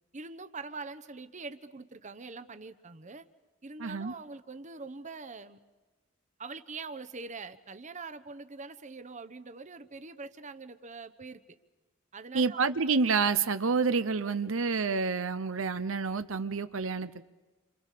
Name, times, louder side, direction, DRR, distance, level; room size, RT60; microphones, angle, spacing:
voice 1, 0.1-3.3 3.6-5.6 6.4-11.4 12.1-12.7, right 4 dB, 35° right, 11 dB, 1.0 m, -43 dB
voice 2, 3.8-4.1 12.3-17.2, right 4 dB, 75° right, 11 dB, 0.9 m, -28 dB
29.0 x 26.5 x 6.8 m, 1.2 s
head